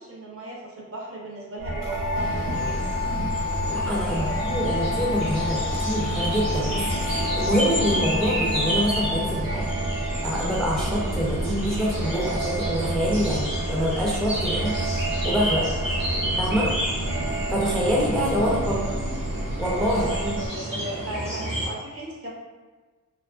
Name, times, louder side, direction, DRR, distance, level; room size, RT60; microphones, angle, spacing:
voice 1, 0.0-2.9 3.7-4.4 18.4-19.0 20.0-22.3, right 2 dB, 45° right, -3 dB, 0.7 m, -37 dB
sound 1, 1.6-20.5, right 1 dB, 60° right, 1.1 m, -30 dB
sound 2, 1.8-9.4, left 6 dB, 85° left, 0.5 m, -31 dB
sound 3, 2.2-21.7, right 1 dB, 85° right, 1.0 m, -30 dB
voice 2, 3.7-9.7 10.2-15.7 16.4-16.7 17.5-19.0 19.6-20.4, equal, ahead, -5 dB, 0.4 m, -26 dB
2.9 x 2.4 x 2.3 m, 1.3 s
wide cardioid pair, 120°, 32 cm